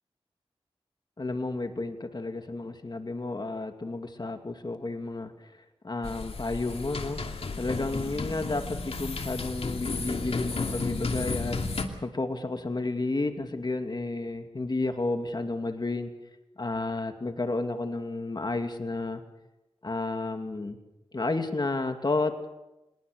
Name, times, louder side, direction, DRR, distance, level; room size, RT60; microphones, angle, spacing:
voice 1, 1.2-5.5 5.8-7.2 7.6-11.6 12.0-16.1 16.6-19.2 19.8-20.8 21.1-22.5, left 2 dB, 45° left, 6 dB, 2.4 m, -31 dB
sound 1, 6.0-11.9, left 3 dB, 75° left, 2.6 m, -33 dB
26.5 x 21.5 x 6.7 m, 0.95 s
wide cardioid pair, 65°, 10 cm